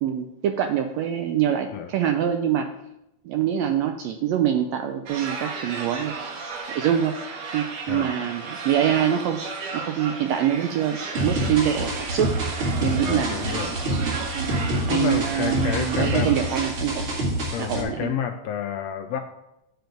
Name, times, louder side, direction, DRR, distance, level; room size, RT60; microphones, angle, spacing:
voice 1, 0.0-2.7 3.2-6.3 6.7-7.1 7.5-9.4 9.7-12.3 12.8-17.1 17.6-18.1, right 9 dB, 80° right, 6 dB, 1.5 m, -25 dB
sound 1, 5.1-16.7, right 4 dB, 65° right, 2.1 m, -34 dB
sound 2, 11.1-17.8, right 1 dB, 45° right, 2.4 m, -27 dB
voice 2, 13.0-13.8 14.5-16.3 17.5-19.2, left 8 dB, 85° left, 4 dB, 1.5 m, -30 dB
7.9 x 4.3 x 6.7 m, 0.85 s
omnidirectional pair, 3.5 m